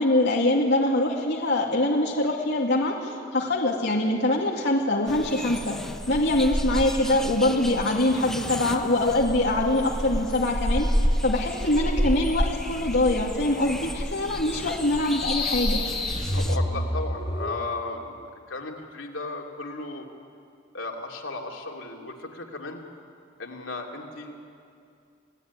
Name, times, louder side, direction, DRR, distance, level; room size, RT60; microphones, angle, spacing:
voice 1, 0.0-5.8 6.1-15.8, left 1 dB, 65° left, -2 dB, 2.4 m, -24 dB
sound 1, 5.1-16.6, equal, 5° left, 1.0 m, -30 dB
sound 2, 14.9-17.7, left 1 dB, 30° left, 2.8 m, -29 dB
voice 2, 16.3-18.2 18.5-20.1 20.7-22.8 23.4-24.4, left 3 dB, 85° left, 1 dB, 3.0 m, -35 dB
29.0 x 18.5 x 9.7 m, 2.4 s
head